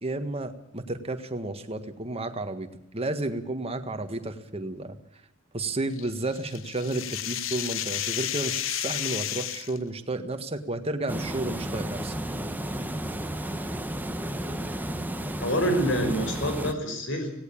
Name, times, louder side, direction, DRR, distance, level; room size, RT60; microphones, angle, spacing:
voice 1, 0.0-2.7 2.9-5.0 5.5-12.1, right 2 dB, 30° right, 8 dB, 1.7 m, -32 dB
sound 1, 6.0-9.8, left 12 dB, 90° left, 0.9 m, -32 dB
Water, 11.1-16.7, right 1 dB, 10° right, 1.1 m, -32 dB
voice 2, 15.4-17.3, equal, 70° left, 6 dB, 5.2 m, -26 dB
18.0 x 17.5 x 8.6 m, 0.77 s
head